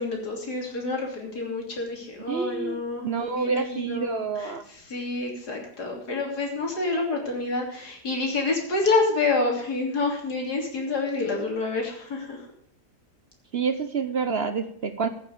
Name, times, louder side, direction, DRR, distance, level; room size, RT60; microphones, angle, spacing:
voice 1, 0.0-12.5, left 3 dB, 90° left, 1 dB, 3.5 m, -28 dB
voice 2, 2.3-4.6 13.5-15.1, right 5 dB, 50° right, 9 dB, 0.8 m, -28 dB
14.0 x 6.5 x 6.8 m, 0.66 s
omnidirectional pair, 1.7 m